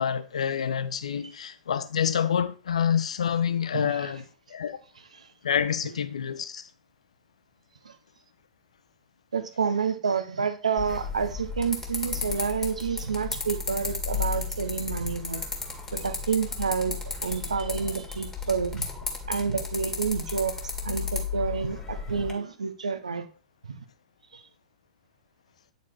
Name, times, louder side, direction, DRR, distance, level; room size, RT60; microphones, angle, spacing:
voice 1, 0.0-4.2 4.5-4.8 5.4-6.7, left 8 dB, 65° left, 0.7 m, -27 dB
voice 2, 3.7-4.1 5.2-5.3 7.8-8.0 9.3-15.4 15.9-18.9 19.3-20.5 20.8-23.3 23.7-23.8 24.3-24.4, right 6 dB, 70° right, 1.0 m, -29 dB
sound 1, 10.8-22.3, left 5 dB, 10° left, 2.0 m, -34 dB
9.3 x 4.2 x 4.6 m
figure-of-eight pair, 100°, 4 cm